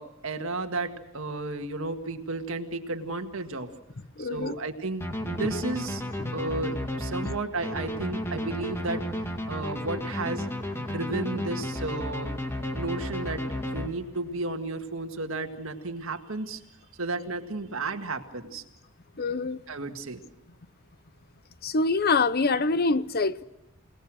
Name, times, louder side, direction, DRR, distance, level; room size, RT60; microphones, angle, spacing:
voice 1, 0.0-3.7 4.2-6.0 6.3-10.5 10.8-12.3 12.7-16.6 17.0-18.6 19.7-20.2, right 3 dB, 65° right, 1.9 m, -33 dB
voice 2, 4.2-4.6 6.2-6.3 19.2-19.6 21.6-23.4, left 3 dB, 45° left, 0.7 m, -25 dB
sound 1, 5.0-14.3, left 1 dB, 10° left, 2.1 m, -33 dB
28.5 x 18.5 x 6.4 m
head